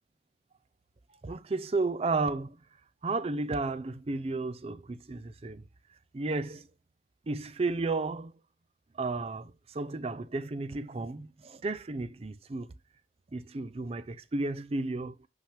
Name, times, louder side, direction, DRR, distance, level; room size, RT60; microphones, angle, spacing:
voice 1, 1.2-2.6 3.0-5.6 6.1-6.7 7.3-8.3 8.9-12.7 13.3-15.3, right 3 dB, 35° right, 0.4 m, -33 dB
5.8 x 5.7 x 3.2 m
head